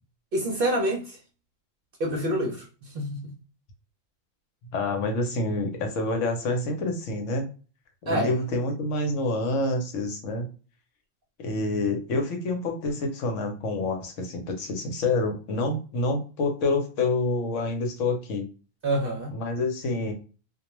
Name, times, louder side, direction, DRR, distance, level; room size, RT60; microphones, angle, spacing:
voice 1, 0.3-1.2 2.0-3.3 8.1-8.3 18.8-19.4, right 1 dB, 55° right, 0.7 m, -27 dB
voice 2, 4.7-7.5 8.0-10.5 11.4-18.5 19.3-20.1, left 2 dB, 70° left, 1.0 m, -27 dB
2.3 x 2.2 x 3.0 m
omnidirectional pair, 1.4 m